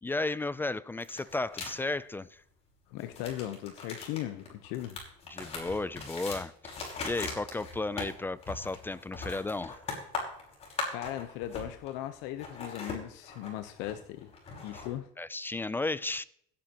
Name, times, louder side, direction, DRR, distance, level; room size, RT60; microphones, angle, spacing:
voice 1, 0.0-2.4 5.3-9.8 15.2-16.2, left 2 dB, 10° left, 0.4 m, -34 dB
sound 1, 1.0-1.7 3.0-12.0 12.3-14.9, left 3 dB, 35° left, 5.3 m, -40 dB
voice 2, 2.9-5.0 10.9-14.3 14.6-15.1, left 13 dB, 75° left, 0.9 m, -38 dB
17.0 x 10.0 x 3.0 m
supercardioid pair, 120°, 19 cm